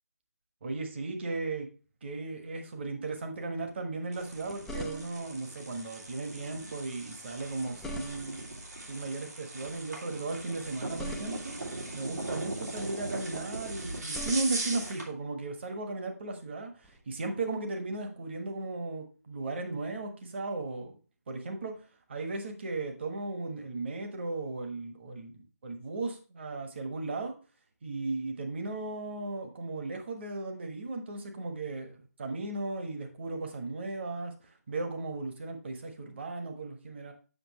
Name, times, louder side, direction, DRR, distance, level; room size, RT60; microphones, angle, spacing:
voice 1, 0.6-1.7 2.0-8.4 8.9-11.6 11.9-21.0 21.3-27.3 27.8-37.1, right 3 dB, 40° right, 4 dB, 1.3 m, -36 dB
sound 1, 4.1-15.1, right 2 dB, 80° right, 2.3 m, -40 dB
sound 2, 4.2-5.4 7.4-8.5 10.5-11.7 13.7-14.9 16.8-17.0, equal, 5° left, 0.4 m, -43 dB
7.9 x 5.9 x 3.0 m, 0.36 s
figure-of-eight pair, 155°, 9 cm